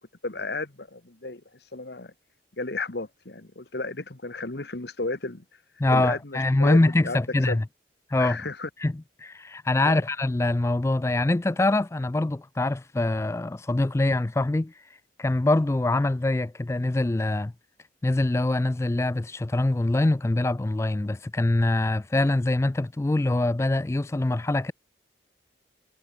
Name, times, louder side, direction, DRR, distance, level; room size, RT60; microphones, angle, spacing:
voice 1, 0.2-1.4 1.7-2.1 2.6-5.4 5.9-6.8 7.0-7.6 8.2-8.7 9.8-10.0, left 3 dB, 60° left, 1.5 m, -33 dB
voice 2, 5.8-7.6 8.1-8.4 8.8-14.7 15.2-17.5 18.0-24.7, left 2 dB, 15° left, 0.3 m, -24 dB
head